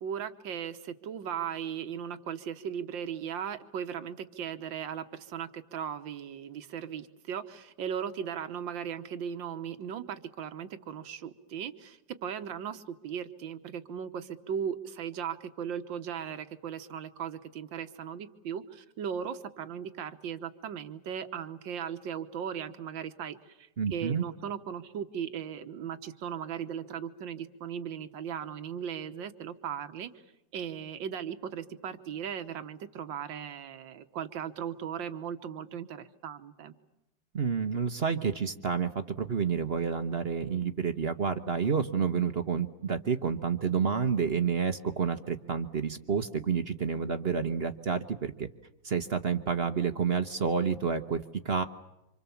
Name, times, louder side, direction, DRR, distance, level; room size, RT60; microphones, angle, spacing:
voice 1, 0.0-30.1 30.5-36.7, right 8 dB, 75° right, 9 dB, 1.9 m, -37 dB
voice 2, 23.8-24.2 37.3-48.5 48.8-51.6, right 6 dB, 40° right, 8 dB, 1.0 m, -29 dB
28.0 x 26.0 x 7.2 m, 0.93 s
omnidirectional pair, 2.1 m